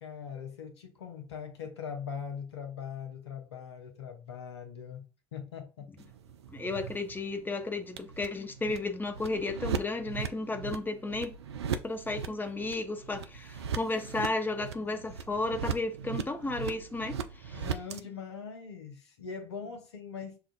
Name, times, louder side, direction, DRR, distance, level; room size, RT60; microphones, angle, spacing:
voice 1, 0.0-5.9 17.5-20.4, left 6 dB, 80° left, 0.9 m, -41 dB
sound 1, 6.0-18.0, right 7 dB, 80° right, 0.4 m, -39 dB
voice 2, 6.5-11.3 11.8-17.6, left 2 dB, 15° left, 0.8 m, -33 dB
6.9 x 2.4 x 2.5 m
figure-of-eight pair, 60°, 14 cm